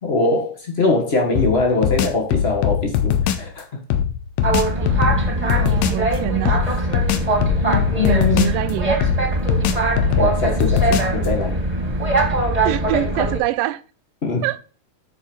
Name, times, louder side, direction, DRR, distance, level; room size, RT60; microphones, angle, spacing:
voice 1, 0.0-3.7 7.5-8.7 10.0-11.6 14.2-14.5, left 3 dB, 65° left, 0.6 m, -22 dB
sound 1, 1.4-3.5 3.9-6.0 6.5-8.7 9.0-11.3, left 9 dB, 85° left, 2.5 m, -21 dB
Boat Water vehicle, 4.4-13.4, right 2 dB, 20° right, 1.2 m, -21 dB
voice 2, 4.8-6.6 8.0-9.0 12.6-13.8 14.4-14.6, right 16 dB, 85° right, 2.3 m, -26 dB
10.5 x 4.6 x 5.4 m
omnidirectional pair, 3.9 m